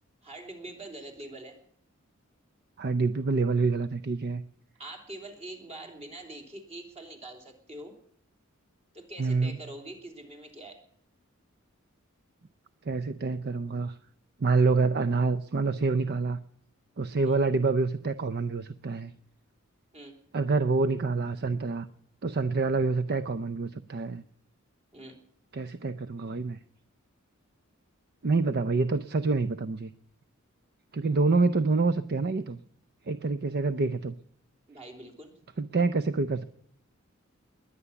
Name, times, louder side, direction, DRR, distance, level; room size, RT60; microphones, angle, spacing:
voice 1, 0.2-1.6 4.8-8.0 8.9-10.8 17.2-17.4 19.9-20.2 24.9-25.2 34.7-35.3, right 1 dB, 30° right, 2 dB, 3.3 m, -44 dB
voice 2, 2.8-4.4 9.2-9.6 12.9-14.0 14.4-16.4 17.0-19.1 20.3-21.9 22.2-24.2 25.5-26.6 28.2-29.9 30.9-32.6 33.1-34.1 35.6-36.4, right 3 dB, 50° right, 13 dB, 0.6 m, -27 dB
21.0 x 9.8 x 7.0 m, 0.66 s
head